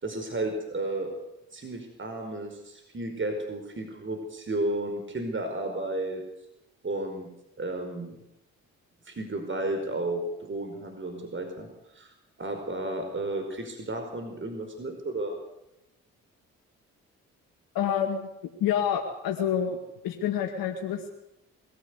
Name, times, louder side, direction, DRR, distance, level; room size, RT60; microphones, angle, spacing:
voice 1, 0.0-1.1 1.5-6.2 6.8-7.3 7.6-8.2 9.1-12.1 12.4-15.4, right 2 dB, 35° right, 4 dB, 5.1 m, -33 dB
voice 2, 17.7-18.3 18.6-19.8 20.0-21.1, left 9 dB, 80° left, 2 dB, 2.1 m, -27 dB
22.5 x 15.5 x 8.3 m, 0.86 s
supercardioid pair, 50°, 35 cm